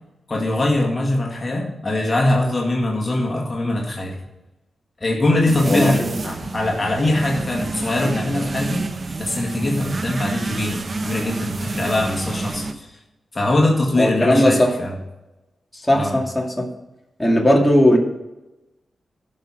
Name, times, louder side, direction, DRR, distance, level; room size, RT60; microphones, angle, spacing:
voice 1, 0.3-4.2 5.0-8.9 9.2-12.9 13.3-14.9 15.9-16.2, left 1 dB, 35° left, 0 dB, 2.0 m, -22 dB
sound 1, 5.5-12.7, right 3 dB, 40° right, 0.9 m, -28 dB
voice 2, 14.0-14.7 15.8-16.7 17.2-18.0, left 1 dB, 10° left, -1 dB, 2.4 m, -17 dB
12.5 x 5.8 x 6.0 m, 1.0 s
cardioid pair, 70°, 0 cm